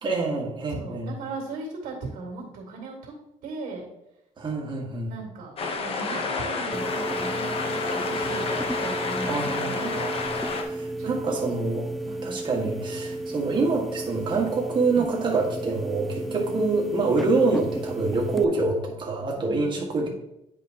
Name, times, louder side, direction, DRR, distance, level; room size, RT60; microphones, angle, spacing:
voice 1, 0.0-1.1 4.4-5.1 9.2-10.2 10.5-11.9 12.2-20.1, right 3 dB, 35° right, -1 dB, 1.8 m, -26 dB
voice 2, 0.7-3.1 3.4-3.9 5.1-8.4 8.8-10.0 11.0-11.4 12.0-12.5 16.2-16.7 19.4-20.1, right 3 dB, 85° right, -2 dB, 2.4 m, -38 dB
sound 1, 5.6-10.6, left 4 dB, 45° left, 1.0 m, -29 dB
sound 2, 6.7-18.4, right 1 dB, ahead, 0.3 m, -33 dB
10.0 x 5.0 x 3.0 m, 0.85 s
cardioid pair, 135°, 14 cm